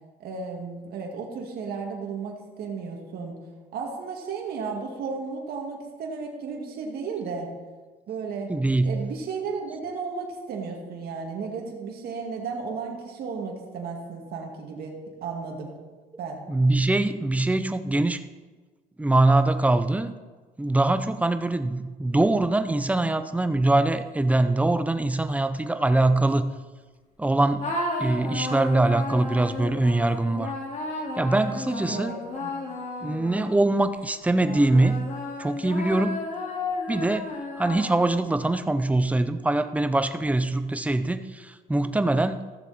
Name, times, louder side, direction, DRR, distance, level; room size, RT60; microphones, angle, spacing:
voice 1, 0.2-3.4 3.7-7.5 8.1-8.5 8.8-15.8 16.2-16.4 31.9-32.6, right 5 dB, 65° right, 0 dB, 2.2 m, -34 dB
voice 2, 8.5-9.1 16.5-18.2 19.0-20.1 20.6-26.5 27.2-27.7 28.0-30.5 31.2-32.2 33.0-35.1 35.4-36.2 36.9-37.3 37.6-42.4, right 2 dB, 10° right, 10 dB, 0.6 m, -23 dB
sound 1, 27.6-33.8 34.4-38.3, left 2 dB, 45° left, 2.7 m, -33 dB
15.0 x 7.2 x 4.3 m, 1.3 s
cardioid pair, 110°, 17 cm